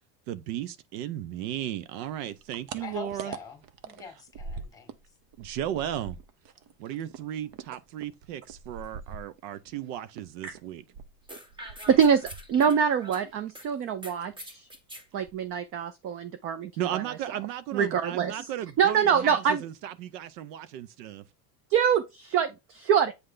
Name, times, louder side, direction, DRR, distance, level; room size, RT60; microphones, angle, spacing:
voice 1, 0.3-3.3 5.4-6.2 6.8-10.8 16.8-21.2, right 11 dB, 80° right, 0.8 m, -35 dB
sound 1, 2.0-5.1 5.3-9.8 10.1-12.9 13.1-13.8 14.1-14.4 14.7-14.8 15.1-15.7, right 5 dB, 45° right, 0.8 m, -44 dB
voice 2, 2.8-4.9, left 6 dB, 5° left, 1.8 m, -44 dB
sound 2, 11.3-13.7 14.0-15.1, equal, 10° right, 0.8 m, -44 dB
voice 3, 11.9-14.7 15.1-17.0 17.7-18.5 18.8-19.6 21.7-23.1, right 7 dB, 30° right, 0.4 m, -25 dB
8.2 x 3.3 x 3.8 m
supercardioid pair, 140°, 48 cm